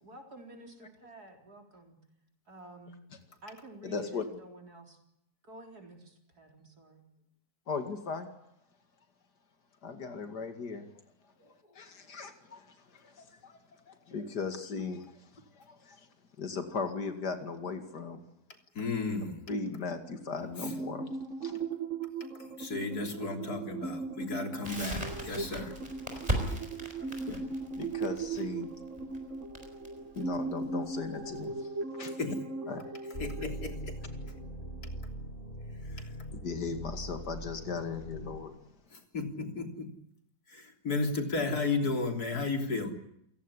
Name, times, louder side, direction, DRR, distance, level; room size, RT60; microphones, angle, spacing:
voice 1, 0.0-2.0 2.5-3.1 3.4-5.0 5.4-7.1, right 1 dB, 70° right, 3 dB, 4.4 m, -50 dB
voice 2, 3.8-4.2 7.7-8.3 9.8-10.9 11.7-13.6 13.9-15.0 15.6-16.1 16.4-18.2 19.5-21.0 21.4-21.5 27.8-28.7 30.2-31.7 31.9-32.1 32.7-32.9 36.3-38.5, left 4 dB, 85° left, 7 dB, 2.9 m, -37 dB
voice 3, 18.7-19.4 20.6-20.7 22.4-25.7 27.1-27.4 32.2-32.4 33.2-34.0 35.9-36.1 38.9-39.9 40.5-42.9, left 3 dB, 70° left, 5 dB, 3.8 m, -34 dB
sound 1, 20.6-35.0, right 4 dB, 50° right, 1.9 m, -39 dB
Crackle, 24.6-31.4, right 1 dB, 20° right, 5.6 m, -37 dB
sound 2, 33.1-38.4, right 1 dB, 35° left, 4.2 m, -41 dB
29.0 x 17.5 x 9.9 m, 0.78 s
omnidirectional pair, 1.7 m